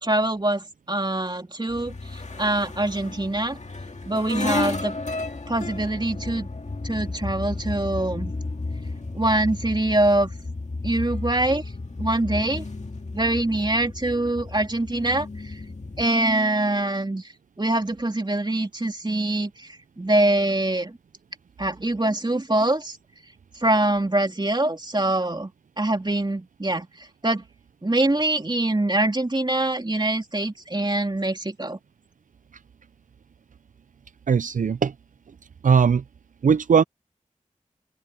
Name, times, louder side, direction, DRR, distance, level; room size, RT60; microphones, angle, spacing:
voice 1, 0.0-3.6 4.1-5.0 5.5-6.5 6.8-8.3 9.1-10.3 10.8-11.6 12.0-12.6 13.1-15.6 16.0-17.2 17.6-21.0 21.6-23.0 23.6-25.5 25.8-27.4 27.8-31.8, right 1 dB, 35° right, 2.8 m, -24 dB
sound 1, 1.7-16.1, left 3 dB, 60° left, 1.9 m, -33 dB
voice 2, 34.3-34.9 35.6-36.0 36.4-36.8, right 6 dB, 75° right, 0.4 m, -19 dB
open air
wide cardioid pair, 55°, 14 cm